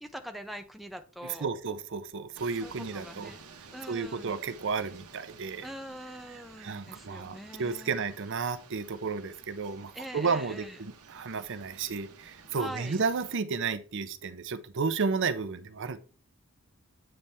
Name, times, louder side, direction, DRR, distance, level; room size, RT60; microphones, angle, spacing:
voice 1, 0.0-1.5 2.6-3.4 3.7-4.4 5.6-7.9 9.9-10.8 12.5-13.0, equal, ahead, 5 dB, 0.5 m, -43 dB
voice 2, 1.2-3.3 3.9-5.7 6.6-16.0, right 5 dB, 60° right, 12 dB, 0.6 m, -32 dB
sound 1, 2.3-13.4, right 5 dB, 80° right, 1.1 m, -53 dB
8.8 x 3.4 x 4.1 m, 0.37 s
head